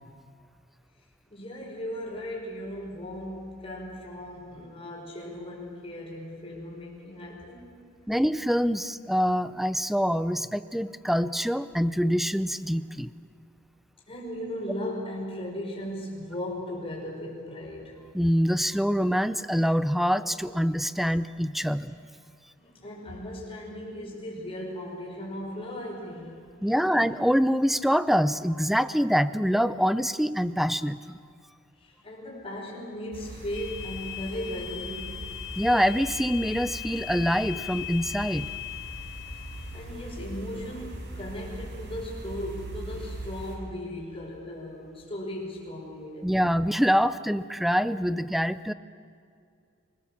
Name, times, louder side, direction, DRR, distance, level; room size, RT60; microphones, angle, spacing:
voice 1, 1.3-7.8 14.1-18.0 21.9-22.0 22.6-26.4 26.9-27.1 31.8-35.2 39.7-46.4, left 1 dB, 30° left, -1 dB, 5.4 m, -37 dB
voice 2, 8.1-13.1 18.1-22.0 26.6-31.2 35.6-38.5 46.2-48.7, equal, ahead, 14 dB, 0.5 m, -25 dB
sound 1, 33.1-43.6, right 1 dB, 60° right, 4.6 m, -40 dB
sound 2, 33.5-39.8, left 14 dB, 60° left, 0.6 m, -39 dB
26.5 x 20.0 x 7.3 m, 2.3 s
head